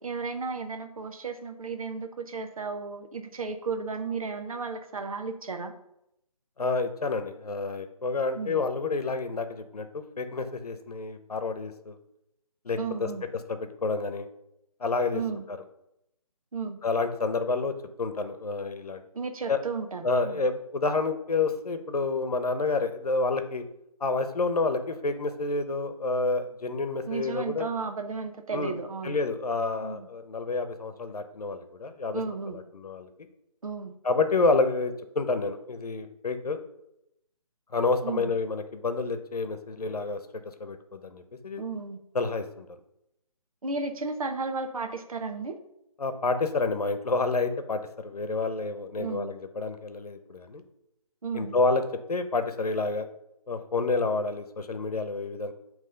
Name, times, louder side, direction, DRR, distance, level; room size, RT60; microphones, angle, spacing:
voice 1, 0.0-5.7 8.3-8.6 12.8-13.2 15.1-15.4 16.5-16.8 19.1-20.5 27.1-29.2 29.8-30.1 32.1-32.6 33.6-34.0 38.0-38.3 41.6-42.0 43.6-45.6 49.0-49.3 51.2-51.6, right 4 dB, 65° right, 7 dB, 0.9 m, -34 dB
voice 2, 6.6-12.0 12.6-13.1 13.5-14.3 14.8-15.2 15.5-15.6 16.8-19.0 19.5-19.6 20.0-23.6 24.0-27.7 28.5-28.8 29.0-32.2 32.5-33.1 34.0-36.6 37.7-40.2 40.6-41.6 42.1-42.7 46.0-50.6 51.3-51.8 52.1-53.1 53.5-55.5, left 3 dB, 90° left, 9 dB, 0.9 m, -29 dB
7.8 x 3.1 x 5.0 m, 0.82 s
hypercardioid pair, 175°, 19 cm